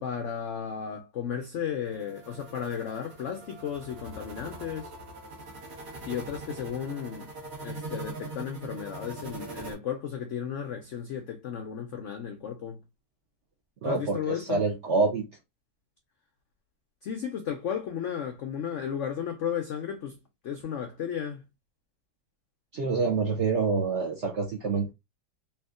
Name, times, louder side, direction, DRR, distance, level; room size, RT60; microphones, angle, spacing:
voice 1, 0.0-4.9 6.1-7.3 7.6-12.8 13.8-14.6 17.0-20.2 20.4-21.4, left 8 dB, 80° left, 0.6 m, -34 dB
sound 1, 1.8-9.7, right 2 dB, 45° right, 1.1 m, -42 dB
voice 2, 13.8-14.2 14.5-15.3 22.7-24.9, right 4 dB, 65° right, 0.7 m, -26 dB
3.4 x 2.9 x 2.3 m
omnidirectional pair, 1.9 m